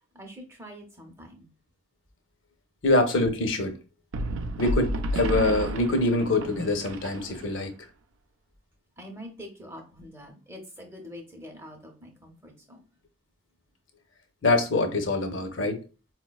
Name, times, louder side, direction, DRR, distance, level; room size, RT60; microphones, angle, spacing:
voice 1, 0.1-1.5 9.0-12.8, equal, 15° right, 0.6 m, -45 dB
voice 2, 2.8-3.8 4.6-7.7 14.4-15.8, left 2 dB, 75° left, 0.6 m, -24 dB
sound 1, 4.1-7.7, right 1 dB, 80° right, 0.4 m, -31 dB
4.5 x 2.1 x 2.3 m
head